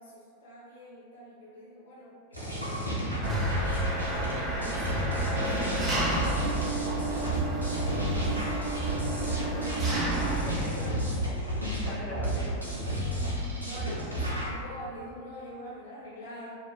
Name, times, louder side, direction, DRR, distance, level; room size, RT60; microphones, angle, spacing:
voice 1, 0.0-3.9 4.5-5.9 6.1-7.4 9.5-10.4 13.6-16.5, equal, 65° left, -8 dB, 0.9 m, -46 dB
sound 1, 2.3-14.6, equal, 85° right, 0.5 m, -31 dB
Engine, 3.2-10.6, right 2 dB, 20° right, 0.5 m, -31 dB
voice 2, 9.2-11.2 11.8-12.4, equal, 5° left, -10 dB, 0.8 m, -42 dB
2.7 x 2.1 x 2.7 m, 2.3 s
figure-of-eight pair, 90°, 0 cm